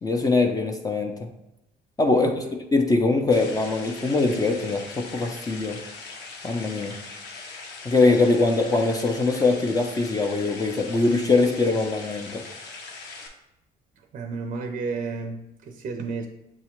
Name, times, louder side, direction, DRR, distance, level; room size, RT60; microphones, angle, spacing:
voice 1, 0.0-1.3 2.0-2.4 2.7-5.8 6.4-7.0 7.8-12.4, left 3 dB, 20° left, 3 dB, 0.4 m, -22 dB
voice 2, 2.1-2.5 14.1-16.3, right 4 dB, 50° right, 5 dB, 0.5 m, -32 dB
sound 1, 3.3-13.3, left 4 dB, 80° left, 0.8 m, -41 dB
7.0 x 2.3 x 2.9 m, 0.88 s
cardioid pair, 110°, 17 cm